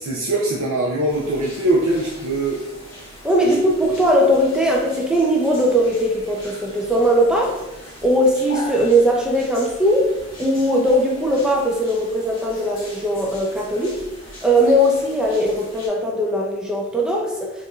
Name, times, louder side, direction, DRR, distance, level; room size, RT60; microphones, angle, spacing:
voice 1, 0.0-2.6 3.4-3.5, right 2 dB, 90° right, -3 dB, 0.5 m, -22 dB
sound 1, 1.1-15.9, left 1 dB, 45° left, 1.5 m, -40 dB
voice 2, 3.2-7.6 8.0-10.1 10.4-14.0 14.4-17.5, equal, 5° right, -2 dB, 0.5 m, -19 dB
4.4 x 2.5 x 2.4 m, 0.94 s
head